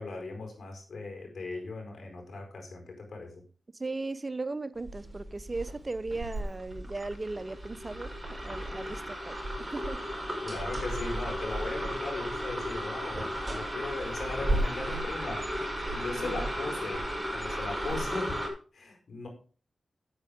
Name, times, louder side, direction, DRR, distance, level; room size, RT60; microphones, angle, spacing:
voice 1, 0.0-3.4 10.4-15.4 15.9-17.1 17.3-18.4 18.7-19.3, left 3 dB, 70° left, 4.8 m, -38 dB
voice 2, 3.8-8.1 8.4-10.0 16.0-16.5, right 3 dB, 35° right, 0.7 m, -37 dB
sound 1, 4.8-18.5, equal, 15° right, 5.0 m, -34 dB
9.4 x 8.2 x 5.0 m
cardioid pair, 50°, 0 cm